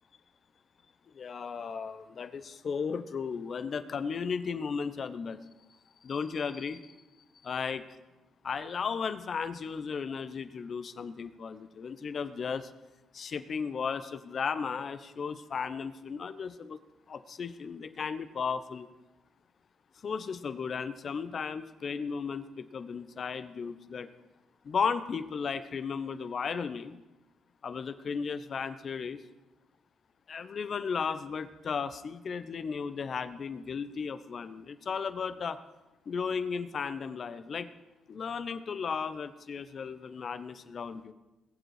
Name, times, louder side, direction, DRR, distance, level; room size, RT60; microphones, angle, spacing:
voice 1, 1.1-5.4 6.0-6.8 7.4-7.8 8.4-12.7 13.1-16.8 17.1-18.9 20.0-24.1 24.6-27.0 27.6-29.2 30.3-35.6 36.1-37.7 38.1-41.1, left 6 dB, 50° left, 12 dB, 0.9 m, -35 dB
20.5 x 7.8 x 5.0 m, 1.0 s
cardioid pair, 90°, 0 cm